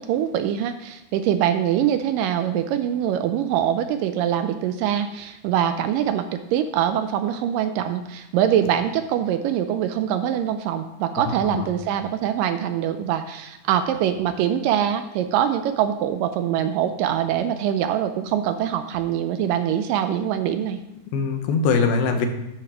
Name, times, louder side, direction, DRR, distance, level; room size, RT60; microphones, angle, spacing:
voice 1, 0.0-20.8, right 10 dB, 80° right, 9 dB, 2.1 m, -23 dB
voice 2, 11.3-11.7 21.1-22.3, left 5 dB, 85° left, 5 dB, 2.9 m, -22 dB
11.0 x 9.8 x 3.0 m, 0.93 s
omnidirectional pair, 4.2 m